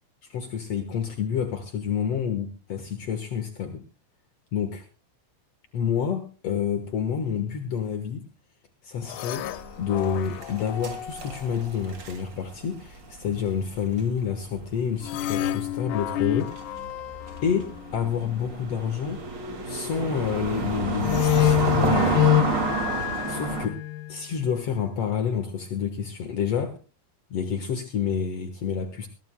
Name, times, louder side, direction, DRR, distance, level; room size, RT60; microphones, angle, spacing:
voice 1, 0.2-3.8 4.5-4.8 5.7-8.3 8.8-9.5 9.8-16.5 17.4-19.2 19.6-22.3 23.3-23.7 24.1-26.8 27.3-29.1, left 7 dB, 70° left, 6 dB, 1.5 m, -28 dB
sound 1, 9.1-11.7 15.0-18.1 21.0-24.2, left 13 dB, 85° left, 3.0 m, -27 dB
sound 2, 9.4-15.0 15.3-15.5 16.2-23.7, right 4 dB, 35° right, 2.0 m, -30 dB
21.5 x 17.5 x 2.2 m, 0.32 s
omnidirectional pair, 4.8 m